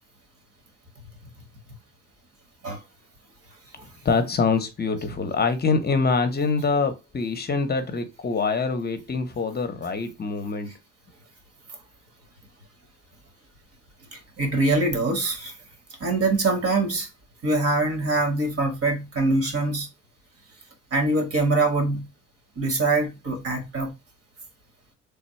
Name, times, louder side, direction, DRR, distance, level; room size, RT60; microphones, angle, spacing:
voice 1, 4.0-10.7, left 4 dB, 30° left, 0.7 m, -25 dB
voice 2, 14.1-15.5 16.0-17.1 17.4-19.9 20.9-22.1 22.6-23.9, right 2 dB, 50° right, 1.4 m, -23 dB
3.4 x 2.2 x 4.2 m
cardioid pair, 110°, 30 cm